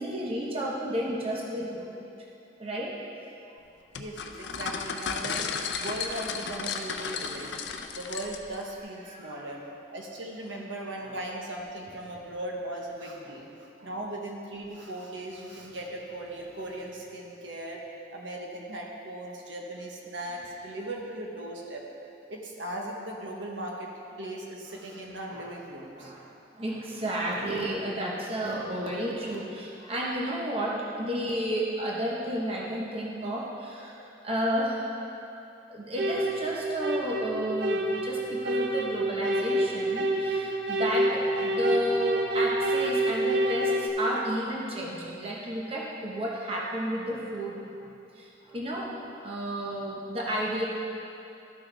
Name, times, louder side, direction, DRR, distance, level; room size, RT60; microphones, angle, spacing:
voice 1, 0.0-2.1 2.6-2.9 9.1-9.5 11.0-11.1 13.8-13.9 25.3-25.5 26.0-26.3 26.5-34.8 35.7-50.7, equal, 30° right, -3 dB, 0.9 m, -32 dB
sound 1, 3.9-8.6, left 5 dB, 65° left, 0.5 m, -34 dB
voice 2, 4.0-5.5 5.8-7.6 7.9-9.6 9.9-13.5 13.8-17.8 18.1-21.8 22.3-23.9 24.2-26.1, right 1 dB, 80° right, -1 dB, 1.1 m, -38 dB
sound 2, 36.0-43.9, right 1 dB, 65° right, 0.6 m, -28 dB
13.0 x 6.1 x 3.4 m, 2.7 s
head